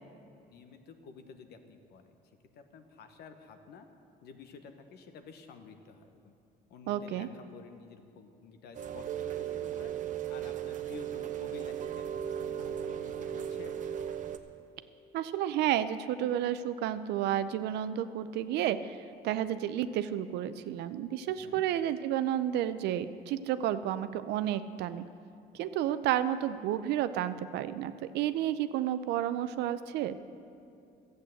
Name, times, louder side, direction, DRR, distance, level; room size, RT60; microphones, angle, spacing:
voice 1, 0.5-2.2 2.5-3.9 4.2-6.3 6.7-9.9 10.3-13.8 21.3-21.6, left 5 dB, 75° left, 7 dB, 1.2 m, -51 dB
voice 2, 6.9-7.3 15.1-19.0 19.2-25.0 25.5-30.2, right 11 dB, 80° right, 12 dB, 0.6 m, -31 dB
Rain, 8.7-14.4, right 10 dB, 50° right, 0.8 m, -36 dB
13.0 x 8.1 x 7.8 m, 2.6 s
cardioid pair, 110°, 17 cm